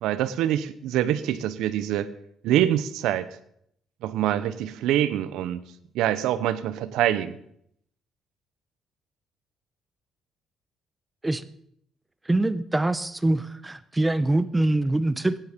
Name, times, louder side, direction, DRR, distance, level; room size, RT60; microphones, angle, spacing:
voice 1, 0.0-2.1 2.4-3.3 4.0-5.6 5.9-7.4, right 11 dB, 85° right, 15 dB, 0.9 m, -25 dB
voice 2, 12.3-15.4, right 2 dB, 15° right, 15 dB, 0.8 m, -24 dB
16.5 x 9.9 x 5.2 m, 0.70 s
cardioid pair, 90°, 0 cm